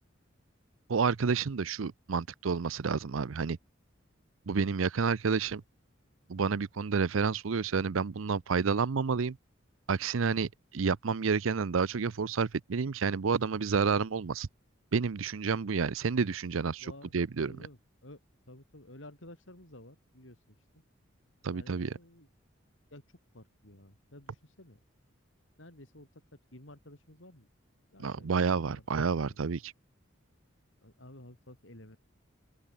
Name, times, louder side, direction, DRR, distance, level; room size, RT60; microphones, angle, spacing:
voice 1, 0.9-3.6 4.5-5.6 6.3-9.4 9.9-14.5 14.9-16.9 17.1-17.5 21.4-21.9 28.0-29.7, right 5 dB, 85° right, 0.6 m, -29 dB
voice 2, 16.8-18.2 18.5-20.8 21.5-22.3 22.9-24.8 25.6-26.2 26.5-27.5 27.9-29.4 30.8-32.0, left 1 dB, 75° left, 5.3 m, -53 dB
open air
head